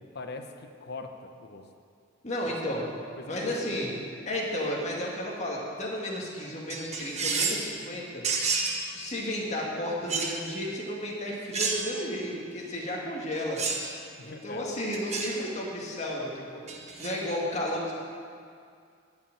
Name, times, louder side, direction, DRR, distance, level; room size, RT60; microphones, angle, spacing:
voice 1, 0.0-1.6 2.6-2.9 3.2-3.9 14.2-14.7, left 3 dB, 55° left, 6 dB, 0.8 m, -42 dB
voice 2, 2.2-2.8 3.2-3.9 4.3-8.2 9.0-13.6 14.2-16.6 17.0-17.9, left 1 dB, 35° left, -3 dB, 2.0 m, -33 dB
sound 1, 6.7-7.7 8.2-8.8 10.1-10.4 11.5-12.1 13.6-13.9 14.9-15.3 16.7-17.1, right 4 dB, 35° right, 1.2 m, -30 dB
11.5 x 5.8 x 8.9 m, 2.3 s
head